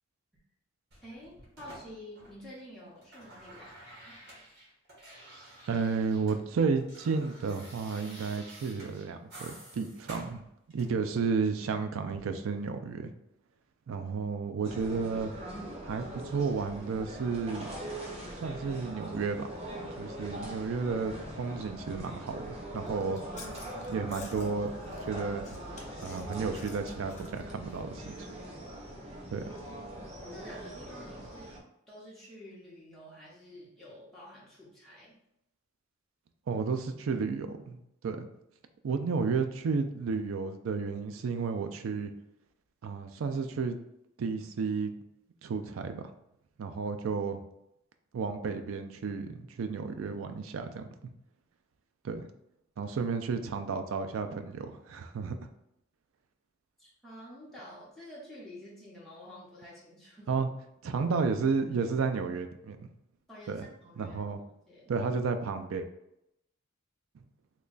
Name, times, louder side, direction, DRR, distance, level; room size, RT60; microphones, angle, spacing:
sound 1, 0.9-2.6 2.9-6.4 6.7-11.1 12.1-12.3, right 1 dB, 55° right, 1.2 m, -51 dB
voice 1, 1.0-4.2 30.3-31.5 31.9-35.1 56.8-60.3 63.3-64.2 64.4-64.9, equal, ahead, -8 dB, 1.0 m, -49 dB
voice 2, 5.7-10.4 10.7-13.1 13.9-15.3 15.8-17.7 18.3-19.5 20.0-23.2 23.9-24.7 25.0-25.5 26.0-28.3 29.3-29.4 36.5-37.8 38.0-38.3 38.8-42.1 42.8-43.8 44.2-44.9 45.4-46.0 46.6-47.4 48.1-50.8 52.0-52.3 52.8-55.4 60.3-60.5 60.8-62.9 63.5-63.7 64.0-64.4 64.9-65.9, right 5 dB, 75° right, 8 dB, 0.4 m, -32 dB
sound 2, 14.6-31.6, right 1 dB, 30° right, 0.6 m, -42 dB
Chewing mastication, 22.8-28.2, left 3 dB, 35° left, 0.5 m, -50 dB
3.1 x 2.2 x 3.8 m, 0.81 s
head